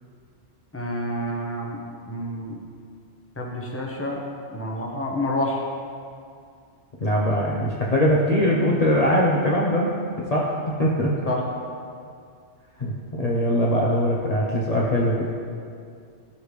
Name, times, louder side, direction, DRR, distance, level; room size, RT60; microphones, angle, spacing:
voice 1, 0.7-1.8 2.1-2.6 3.4-4.2 4.5-5.6 11.3-11.4, left 1 dB, 15° left, -1 dB, 0.9 m, -28 dB
voice 2, 7.0-9.9 10.3-11.1 12.8-15.3, equal, 40° left, -4 dB, 0.8 m, -21 dB
13.0 x 5.0 x 3.2 m, 2.3 s
omnidirectional pair, 1.2 m